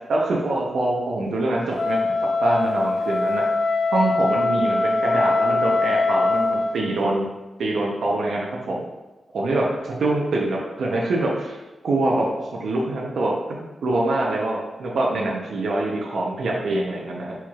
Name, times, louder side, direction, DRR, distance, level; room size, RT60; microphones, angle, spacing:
voice 1, 0.1-2.1 2.4-3.4 3.9-7.3 7.6-8.8 9.3-11.6 11.8-17.4, right 2 dB, 70° right, -2 dB, 0.6 m, -24 dB
Wind instrument woodwind instrument, 1.7-6.8, left 3 dB, 65° left, 0.4 m, -22 dB
4.6 x 4.4 x 2.4 m, 1.1 s
wide cardioid pair, 180°, 0 cm